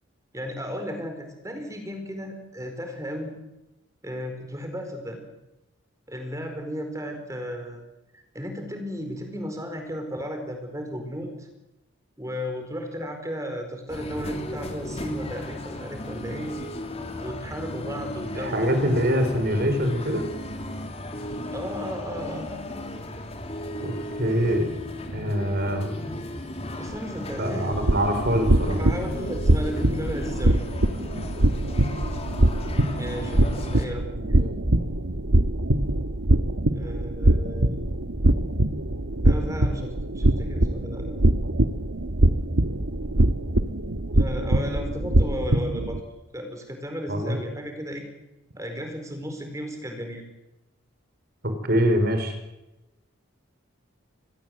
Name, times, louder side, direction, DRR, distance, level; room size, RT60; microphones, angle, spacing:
voice 1, 0.3-3.3 4.0-5.2 6.1-7.8 8.1-11.5 12.2-16.6 17.2-18.7 21.5-22.5 26.8-27.8 28.8-30.6 32.9-34.6 36.7-37.8 39.2-41.2 44.1-48.1 48.6-50.2, equal, 15° right, 5 dB, 4.6 m, -34 dB
sound 1, 13.9-33.9, left 1 dB, 30° left, 2.8 m, -35 dB
voice 2, 18.3-20.2 23.8-23.9 24.2-24.7 25.1-25.9 27.4-28.8 47.1-47.4 51.6-52.3, equal, 50° right, 7 dB, 4.9 m, -24 dB
sound 2, 27.7-46.0, right 1 dB, 85° right, 1.4 m, -23 dB
25.5 x 20.5 x 7.9 m, 0.96 s
head